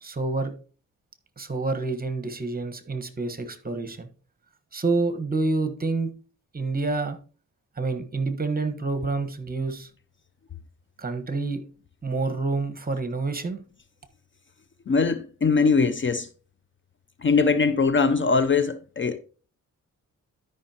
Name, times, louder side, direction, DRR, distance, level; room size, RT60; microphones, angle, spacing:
voice 1, 0.0-0.5 1.4-4.1 4.7-6.1 6.5-7.2 7.8-9.9 11.0-11.6 12.0-13.6, right 3 dB, 25° right, 1.2 m, -28 dB
voice 2, 14.9-16.3 17.2-19.2, left 4 dB, 35° left, 0.6 m, -21 dB
12.5 x 5.5 x 2.9 m
cardioid pair, 80°, 33 cm